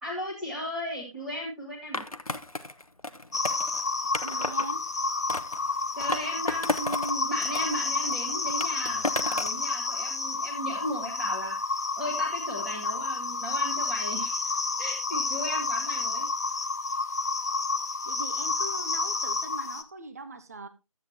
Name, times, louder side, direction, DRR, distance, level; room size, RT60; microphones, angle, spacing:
voice 1, 0.0-2.1 6.0-11.6 12.0-16.3, equal, ahead, -4 dB, 1.5 m, -36 dB
Skateboard, 1.9-4.7 5.3-7.1 7.4-9.6, left 2 dB, 90° left, 1.0 m, -33 dB
sound 1, 3.3-19.8, left 3 dB, 30° left, 0.8 m, -30 dB
voice 2, 4.2-4.8 18.0-20.7, right 2 dB, 25° right, 10 dB, 0.9 m, -40 dB
13.0 x 8.2 x 2.7 m, 0.24 s
figure-of-eight pair, 160°, 18 cm